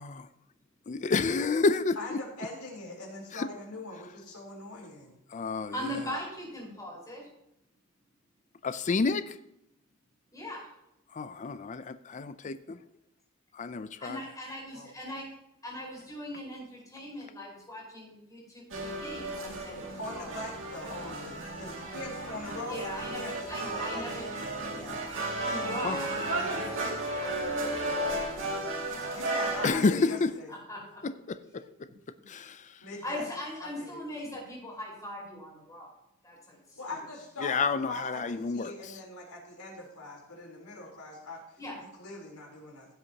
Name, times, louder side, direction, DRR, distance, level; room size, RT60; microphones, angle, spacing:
voice 1, 0.9-2.0 3.4-3.5 5.3-5.7 8.6-9.2 11.2-12.6 13.6-14.2 25.8-25.9 29.6-30.3 32.3-32.5 37.4-38.7, left 4 dB, 35° left, 12 dB, 0.4 m, -28 dB
voice 2, 2.0-5.2 14.7-14.9 20.0-24.2 29.1-30.5 32.8-33.3 33.6-34.0 36.8-41.4 42.0-42.9, left 2 dB, 90° left, -2 dB, 3.7 m, -42 dB
voice 3, 5.7-7.3 10.3-10.7 14.0-15.3 15.6-20.3 21.5-21.6 22.7-24.3 24.7-25.0 25.4-26.9 27.2-27.5 29.5-29.6 30.5-31.0 33.0-35.9 36.2-37.0 41.6-41.8, left 1 dB, 15° left, -4 dB, 4.7 m, -40 dB
sound 1, 18.7-29.7, right 2 dB, 60° right, 2.3 m, -34 dB
16.0 x 8.1 x 2.9 m, 0.85 s
head